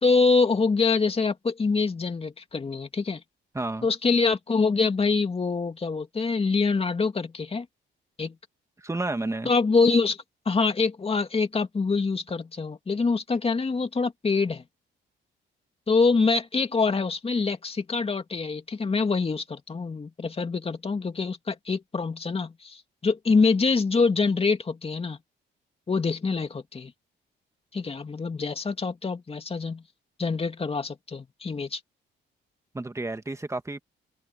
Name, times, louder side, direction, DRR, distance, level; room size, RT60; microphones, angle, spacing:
voice 1, 0.0-3.2 3.8-7.7 8.2-8.3 9.4-10.2 10.5-14.6 15.9-25.2 25.9-26.9 27.7-29.8 30.2-31.8, left 4 dB, 30° left, 2.4 m, -25 dB
voice 2, 3.5-3.9 8.8-9.5 32.7-33.8, right 2 dB, 15° right, 1.8 m, -31 dB
open air
cardioid pair, 90°, 20 cm